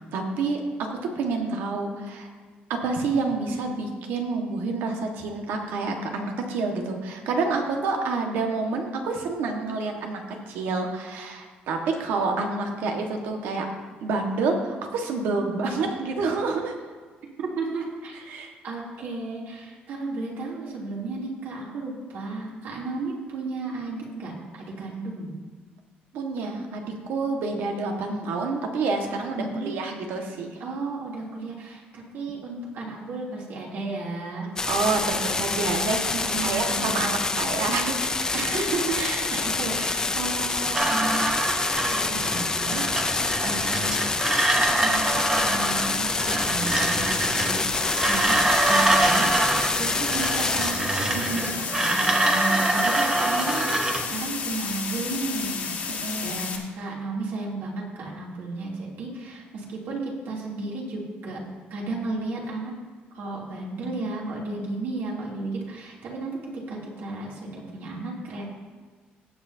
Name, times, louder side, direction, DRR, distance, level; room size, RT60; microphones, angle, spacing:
voice 1, 0.1-2.3 2.7-13.7 14.0-16.7 18.3-18.5 26.1-30.6 34.7-38.1 49.6-49.9 55.9-56.4, right 3 dB, 90° right, 2 dB, 1.6 m, -28 dB
voice 2, 17.4-18.3 18.6-25.3 29.3-29.7 30.6-34.5 36.2-37.0 38.3-41.3 41.8-44.1 44.5-48.4 48.6-61.4 61.7-62.7 63.1-68.5, right 3 dB, 65° right, -3 dB, 3.0 m, -33 dB
sound 1, 34.6-50.7, left 3 dB, 20° left, 0.6 m, -27 dB
sound 2, 40.7-54.1, right 2 dB, 15° right, 0.8 m, -25 dB
sound 3, 44.5-56.6, left 5 dB, 50° left, 1.6 m, -34 dB
18.0 x 8.0 x 2.8 m, 1.4 s
cardioid pair, 155°, 4 cm